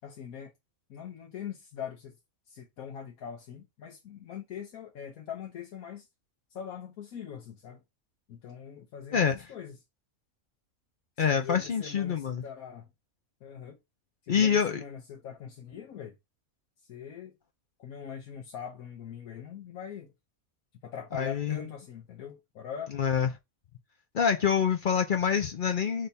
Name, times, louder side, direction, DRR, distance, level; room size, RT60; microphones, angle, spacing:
voice 1, 0.0-0.5 0.9-2.2 2.5-6.1 6.5-7.8 8.3-9.8 11.3-12.9 13.4-13.8 14.2-16.2 16.9-17.4 17.8-20.1 20.8-22.9, left 8 dB, 80° left, 1.2 m, -42 dB
voice 2, 9.1-9.4 11.2-12.4 14.3-14.8 21.1-21.6 22.9-23.3 24.1-26.1, left 7 dB, 60° left, 0.5 m, -26 dB
3.4 x 3.3 x 4.1 m
omnidirectional pair, 1.5 m